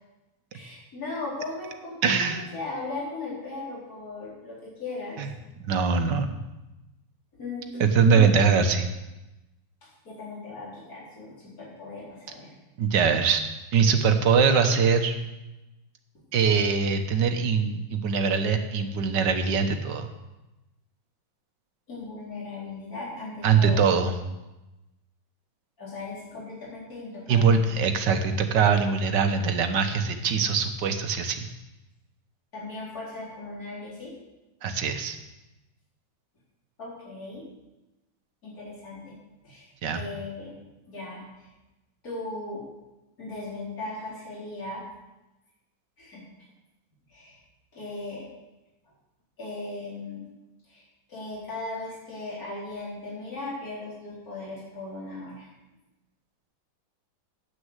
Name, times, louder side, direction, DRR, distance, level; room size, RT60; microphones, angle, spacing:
voice 1, 0.5-5.2 7.3-8.2 9.8-12.5 21.9-24.0 25.8-27.6 32.5-34.1 36.8-37.5 38.4-39.2 39.4-40.5 40.9-41.5 42.0-42.6 43.2-44.8 46.0-46.2 47.1-47.4 47.7-48.3 49.4-50.2 50.7-50.8 51.1-55.5, left 2 dB, 45° left, -7 dB, 4.8 m, -37 dB
voice 2, 2.0-2.4 5.2-5.3 5.7-6.4 7.8-8.9 12.8-13.4 13.7-15.1 16.3-20.1 23.4-24.1 27.3-31.5 34.6-35.2 39.8-40.0, right 5 dB, 65° right, 7 dB, 1.6 m, -22 dB
9.7 x 8.6 x 8.0 m, 1.0 s
omnidirectional pair, 2.2 m